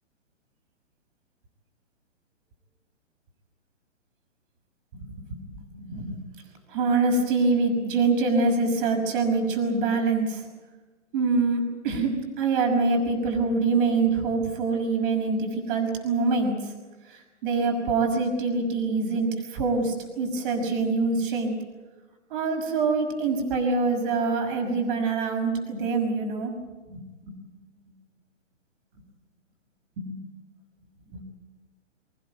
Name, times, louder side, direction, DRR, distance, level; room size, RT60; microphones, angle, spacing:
voice 1, 4.9-6.2 6.7-10.4 11.1-16.7 17.1-21.6 22.3-26.6 26.9-27.0 30.0-30.2 31.1-31.2, right 3 dB, 45° right, 3 dB, 6.1 m, -25 dB
28.5 x 16.0 x 9.3 m, 1.2 s
hypercardioid pair, 135°, 36 cm